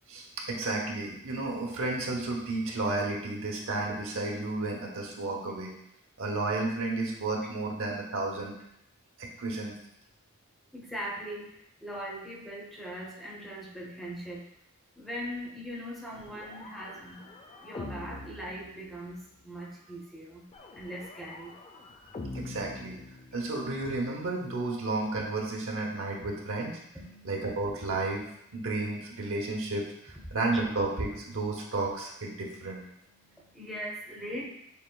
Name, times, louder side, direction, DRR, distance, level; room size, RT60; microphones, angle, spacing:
voice 1, 0.1-5.7 6.2-8.5 9.2-9.7 22.3-23.0 23.3-26.8 27.2-28.2 28.5-32.8, right 2 dB, 65° right, 0 dB, 0.8 m, -32 dB
voice 2, 10.7-14.5 15.0-17.3 17.6-20.4 20.7-21.5 26.9-27.4 30.3-30.4 33.0-34.5, equal, ahead, -4 dB, 0.7 m, -40 dB
sound 1, 16.1-19.4 20.5-23.8, left 3 dB, 30° left, 0.4 m, -44 dB
6.9 x 2.9 x 2.3 m, 0.76 s
head